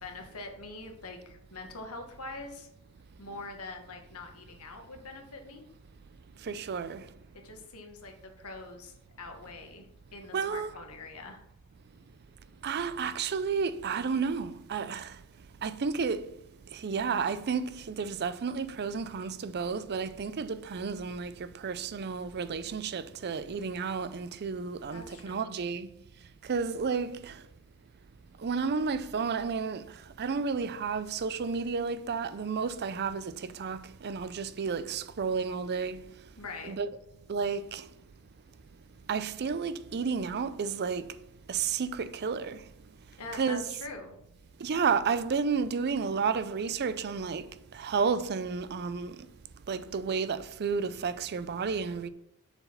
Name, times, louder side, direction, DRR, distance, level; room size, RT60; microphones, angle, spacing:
voice 1, 0.0-2.7 3.2-5.7 7.3-11.4 24.9-25.6 36.4-36.7 43.2-44.2, left 3 dB, 80° left, 1.5 m, -44 dB
voice 2, 6.4-7.0 10.3-10.7 12.6-15.1 15.6-16.3 16.7-25.9 26.5-27.3 28.4-29.8 30.2-36.0 36.6-36.9 37.3-37.8 39.1-41.2 41.5-42.6 43.3-43.6 44.6-47.4 47.7-49.3 49.7-52.1, right 5 dB, 50° right, 0.5 m, -31 dB
6.8 x 4.7 x 5.7 m
head